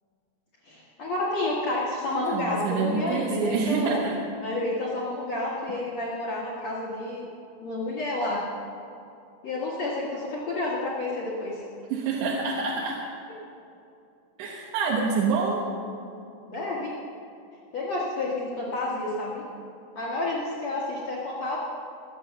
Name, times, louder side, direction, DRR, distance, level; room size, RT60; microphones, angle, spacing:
voice 1, 0.6-7.2 7.6-8.4 9.4-11.6 16.5-17.0 17.7-19.4 19.9-21.6, left 2 dB, 75° left, -6 dB, 1.5 m, -30 dB
voice 2, 2.3-4.2 11.9-13.0 14.4-15.6, right 4 dB, 70° right, -3 dB, 2.8 m, -27 dB
21.5 x 7.3 x 6.7 m, 2.7 s
omnidirectional pair, 5.8 m